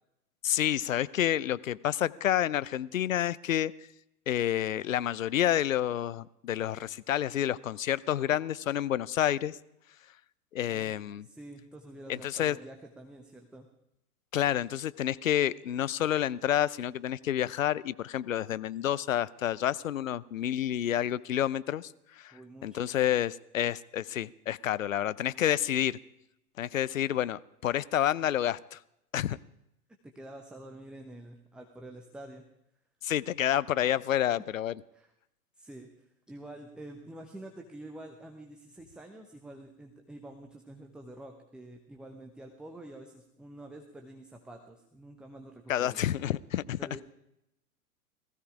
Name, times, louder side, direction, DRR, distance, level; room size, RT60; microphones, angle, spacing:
voice 1, 0.4-3.7 4.3-9.6 10.5-11.3 12.1-12.6 14.3-21.9 22.2-22.3 22.6-26.0 26.6-28.8 29.1-29.4 33.0-34.7 45.7-46.8, left 11 dB, 60° left, 18 dB, 0.7 m, -29 dB
voice 2, 11.2-13.7 22.3-22.8 30.1-32.5 34.3-34.4 34.9-35.1 35.6-46.0 46.8-47.0, right 1 dB, ahead, 4 dB, 0.8 m, -47 dB
18.5 x 15.5 x 4.9 m, 0.83 s
figure-of-eight pair, 105°, 45 cm